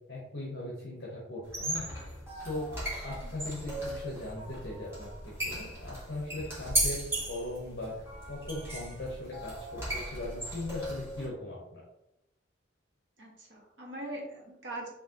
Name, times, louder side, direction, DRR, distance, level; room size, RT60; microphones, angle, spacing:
voice 1, 0.1-1.9 2.4-2.7 3.0-5.1 5.4-7.9 8.3-11.8, left 1 dB, 55° left, -5 dB, 1.0 m, -39 dB
sound 1, 1.4-11.3, right 1 dB, 15° right, 1.4 m, -36 dB
voice 2, 13.2-14.9, right 1 dB, 65° right, -2 dB, 1.2 m, -41 dB
4.9 x 2.8 x 2.9 m, 0.89 s
head